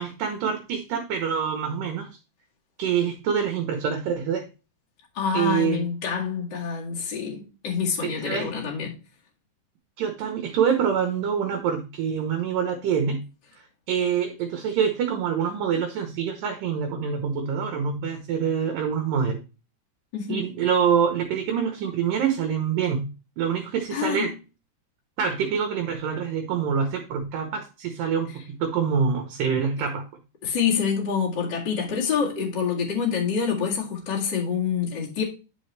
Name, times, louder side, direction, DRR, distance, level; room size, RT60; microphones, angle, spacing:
voice 1, 0.0-2.1 2.8-4.5 5.3-5.9 8.0-8.5 10.0-13.2 13.9-19.4 20.3-23.1 23.4-24.3 25.2-30.0, right 7 dB, 70° right, 2.1 m, -25 dB
voice 2, 5.1-8.9 20.1-20.5 23.9-24.3 30.4-35.2, left 6 dB, 40° left, 1.6 m, -26 dB
9.3 x 5.4 x 3.2 m
omnidirectional pair, 4.9 m